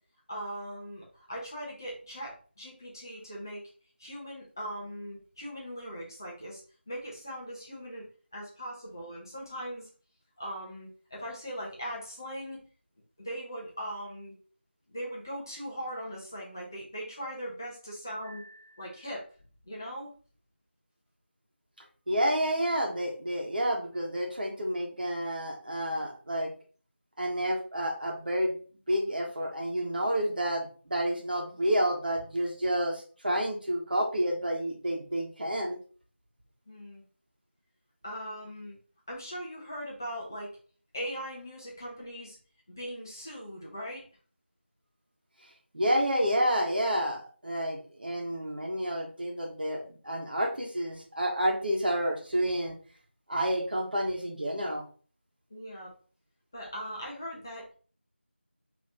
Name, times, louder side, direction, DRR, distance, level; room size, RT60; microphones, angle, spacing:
voice 1, 0.3-3.6 4.0-8.0 8.3-9.9 10.4-12.6 13.2-14.3 14.9-19.2 19.7-20.1 36.7-37.0 38.0-38.8 39.1-40.6 40.9-42.4 42.8-44.0 55.5-55.9 56.5-57.7, equal, 15° left, -4 dB, 0.6 m, -40 dB
voice 2, 22.1-26.5 27.2-28.6 28.9-35.8 45.7-52.8 53.3-54.8, equal, 50° right, 0 dB, 1.2 m, -29 dB
4.0 x 3.0 x 3.4 m, 0.40 s
figure-of-eight pair, 170°, 6 cm